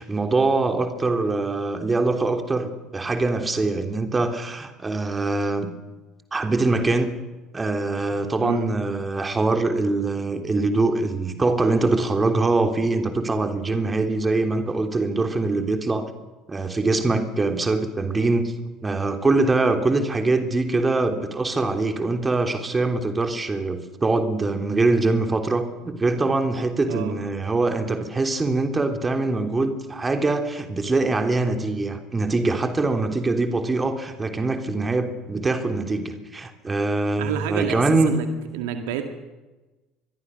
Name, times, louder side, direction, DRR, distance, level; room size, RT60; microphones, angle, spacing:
voice 1, 0.0-5.7 6.3-7.2 7.5-16.1 16.5-18.5 18.8-38.2, right 3 dB, 20° right, 6 dB, 3.3 m, -23 dB
voice 2, 26.8-27.2 37.2-38.3 38.5-39.2, right 9 dB, 65° right, 7 dB, 2.0 m, -28 dB
26.0 x 22.0 x 6.5 m, 1.1 s
figure-of-eight pair, 60°, 0 cm